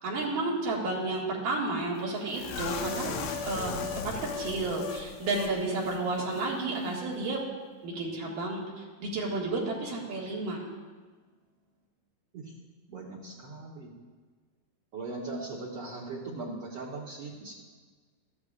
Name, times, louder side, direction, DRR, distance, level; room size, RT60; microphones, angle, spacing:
voice 1, 0.0-3.1 3.4-3.7 4.0-7.4 7.8-10.6, right 2 dB, 75° right, -3 dB, 3.6 m, -31 dB
sound 1, 2.3-5.5 5.8-6.0 6.3-6.5, left 5 dB, 85° left, 1.2 m, -36 dB
voice 2, 12.9-13.9 14.9-17.5, right 3 dB, 55° right, -4 dB, 1.8 m, -39 dB
18.0 x 13.5 x 2.5 m, 1.5 s
omnidirectional pair, 3.8 m